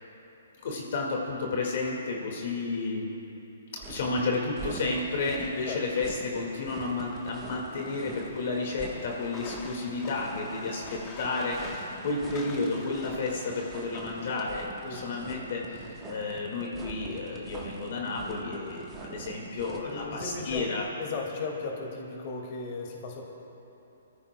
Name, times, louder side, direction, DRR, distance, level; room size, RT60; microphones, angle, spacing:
voice 1, 0.6-3.1 3.7-20.9, left 3 dB, 55° left, -1 dB, 1.9 m, -32 dB
sound 1, 3.8-20.9, right 4 dB, 15° right, 1.1 m, -44 dB
sound 2, 4.7-14.4, left 3 dB, 20° left, 1.1 m, -48 dB
voice 2, 14.8-15.2 19.8-20.7 21.0-23.2, left 4 dB, 40° left, 0 dB, 2.0 m, -36 dB
27.0 x 14.0 x 2.2 m, 3.0 s
hypercardioid pair, 155°, 0 cm